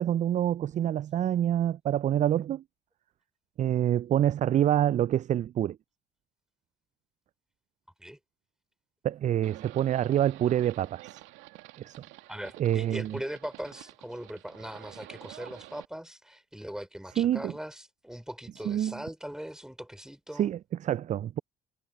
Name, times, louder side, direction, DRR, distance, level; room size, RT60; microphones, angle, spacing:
voice 1, 0.0-2.6 3.6-5.8 9.0-11.2 11.8-12.0 12.6-13.2 17.2-17.5 18.7-18.9 20.3-21.4, right 11 dB, 35° right, 0.4 m, -26 dB
Livestock farm animals working animals, 9.4-15.8, right 20 dB, 65° right, 2.4 m, -49 dB
voice 2, 12.3-20.5, equal, 5° right, 4.4 m, -40 dB
hypercardioid pair, 55°, 21 cm